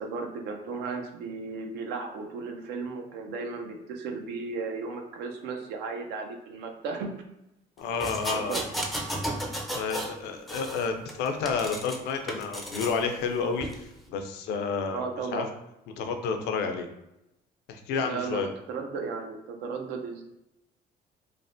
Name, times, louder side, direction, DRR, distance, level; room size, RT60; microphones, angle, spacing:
voice 1, 0.0-7.1 8.3-8.6 14.9-15.5 18.0-20.2, right 4 dB, 85° right, 4 dB, 0.5 m, -35 dB
voice 2, 7.8-8.6 9.4-15.0 15.3-15.5 16.0-16.9 17.7-18.5, left 5 dB, 80° left, 5 dB, 0.5 m, -30 dB
sound 1, 8.0-10.2 10.5-12.0 12.3-13.0 13.6-13.8, right 1 dB, ahead, 0.4 m, -34 dB
3.1 x 2.1 x 2.6 m, 0.87 s
cardioid pair, 110°, 17 cm